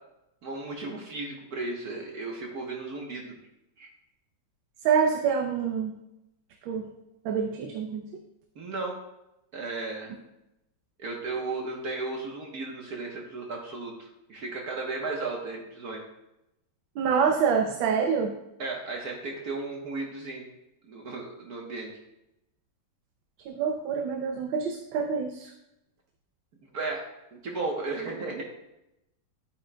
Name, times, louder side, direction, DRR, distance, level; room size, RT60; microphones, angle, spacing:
voice 1, 0.4-3.4 3.8-3.9 8.5-9.0 9.5-10.1 11.0-16.0 18.6-20.5 20.9-21.9 26.7-27.0 27.4-28.4, right 3 dB, 55° right, 0 dB, 1.5 m, -34 dB
voice 2, 4.8-6.0 6.6-6.9 7.2-8.1 17.0-18.4 23.4-25.5, right 6 dB, 85° right, 4 dB, 1.5 m, -26 dB
11.0 x 8.9 x 2.2 m, 0.87 s
omnidirectional pair, 2.1 m